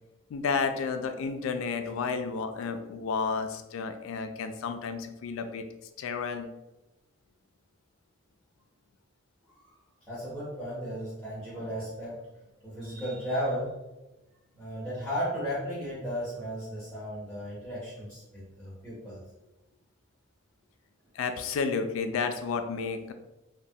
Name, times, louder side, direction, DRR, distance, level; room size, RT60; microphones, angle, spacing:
voice 1, 0.3-5.6 6.0-6.5 21.1-23.1, left 5 dB, 80° left, 7 dB, 0.3 m, -31 dB
voice 2, 10.1-12.1 12.6-13.7 14.5-19.2, equal, 5° left, -10 dB, 0.6 m, -35 dB
3.0 x 2.1 x 2.7 m, 0.99 s
head